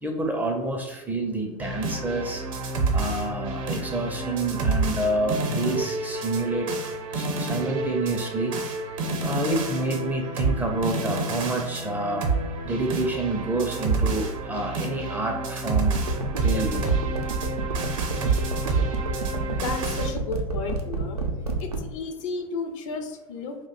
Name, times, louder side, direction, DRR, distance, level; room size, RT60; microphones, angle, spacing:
voice 1, 0.0-2.4 2.9-6.7 7.1-8.5 9.2-12.3 12.6-16.0 16.4-16.9, right 2 dB, 10° right, 2 dB, 0.4 m, -28 dB
sound 1, 1.6-20.1, right 3 dB, 55° right, 0.7 m, -29 dB
sound 2, 15.9-21.8, right 4 dB, 90° right, 0.5 m, -28 dB
voice 2, 19.5-21.2 21.6-23.6, left 4 dB, 55° left, 6 dB, 0.5 m, -33 dB
2.5 x 2.1 x 3.8 m, 1.0 s
figure-of-eight pair, 85°, 19 cm